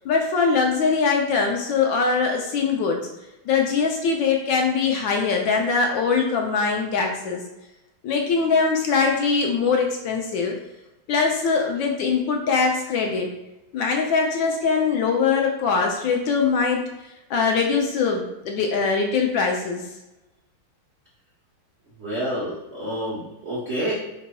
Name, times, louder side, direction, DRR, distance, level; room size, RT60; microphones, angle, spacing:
voice 1, 0.0-3.0 3.5-7.4 8.0-10.6 11.1-13.3 13.7-16.9 17.3-19.8, left 5 dB, 75° left, 2 dB, 1.2 m, -22 dB
voice 2, 22.0-23.9, right 1 dB, 65° right, -6 dB, 0.6 m, -28 dB
5.0 x 4.1 x 2.2 m, 0.99 s
omnidirectional pair, 2.4 m